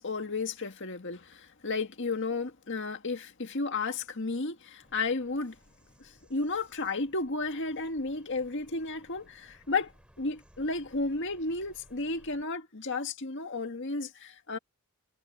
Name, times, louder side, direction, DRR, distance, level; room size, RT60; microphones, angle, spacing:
voice 1, 0.0-5.6 6.0-9.9 10.2-14.6, left 3 dB, 55° left, 1.9 m, -33 dB
Bird vocalization bird call bird song, 4.8-12.4, equal, 5° right, 6.3 m, -61 dB
head